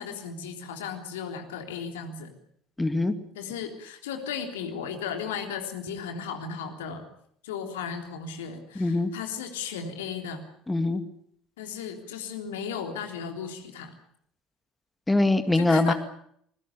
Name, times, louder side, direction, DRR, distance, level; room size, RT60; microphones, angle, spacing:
voice 1, 0.0-2.3 3.4-7.0 7.4-10.5 11.6-13.9 15.5-15.9, left 7 dB, 70° left, 5 dB, 3.5 m, -35 dB
voice 2, 2.8-3.1 8.8-9.1 10.7-11.0 15.1-15.9, left 2 dB, 10° left, 9 dB, 2.3 m, -23 dB
27.0 x 20.5 x 6.9 m, 0.67 s
figure-of-eight pair, 60°, 0 cm